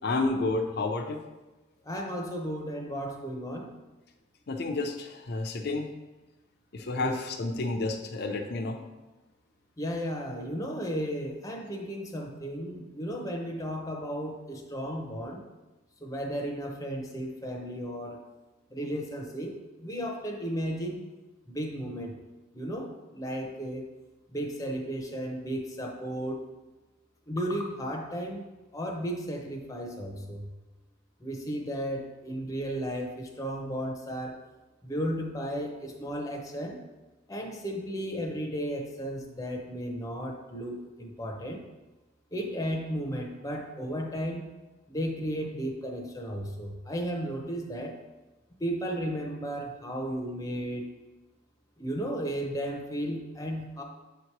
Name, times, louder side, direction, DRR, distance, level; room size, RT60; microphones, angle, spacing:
voice 1, 0.0-1.2 4.5-5.9 6.7-8.8, left 3 dB, 55° left, 4 dB, 0.5 m, -30 dB
voice 2, 1.9-3.7 6.9-7.2 9.8-15.5 16.0-18.2 18.7-19.5 19.8-21.0 21.5-22.2 22.5-23.9 24.3-26.4 27.3-28.4 28.7-30.5 31.2-34.4 34.8-36.8 37.3-41.6 42.3-44.5 44.9-47.9 48.6-50.9 51.8-53.8, equal, 15° left, 1 dB, 0.7 m, -34 dB
7.1 x 2.9 x 4.6 m, 1.1 s
head